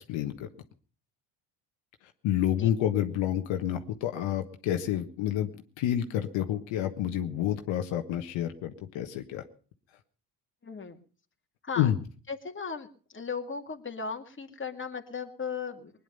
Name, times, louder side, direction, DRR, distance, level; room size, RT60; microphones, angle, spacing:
voice 1, 0.1-0.5 2.2-5.5 5.8-9.4 11.8-12.0, left 11 dB, 70° left, 6 dB, 1.5 m, -29 dB
voice 2, 10.6-11.0 11.6-11.9 12.3-12.9 13.1-15.9, left 5 dB, 25° left, 4 dB, 2.2 m, -36 dB
20.5 x 10.0 x 5.5 m, 0.42 s
hypercardioid pair, 60°, 48 cm